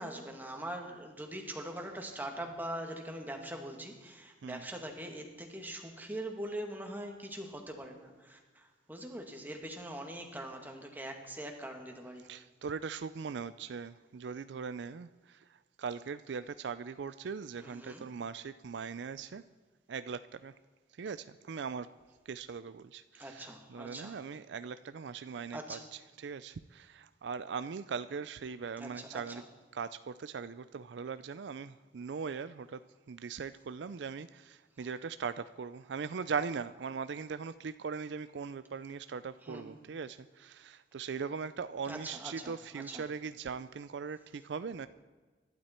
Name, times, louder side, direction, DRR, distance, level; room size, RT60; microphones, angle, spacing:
voice 1, 0.0-12.2 17.6-18.1 23.2-24.2 25.5-25.9 28.8-29.4 39.4-39.6 41.9-43.0, right 1 dB, 10° right, 3 dB, 1.9 m, -42 dB
voice 2, 12.3-15.4 15.8-19.4 19.9-20.5 21.0-21.9 22.3-29.4 29.7-32.8 33.1-44.9, right 5 dB, 70° right, 13 dB, 0.4 m, -40 dB
24.0 x 12.0 x 4.4 m, 1.3 s
head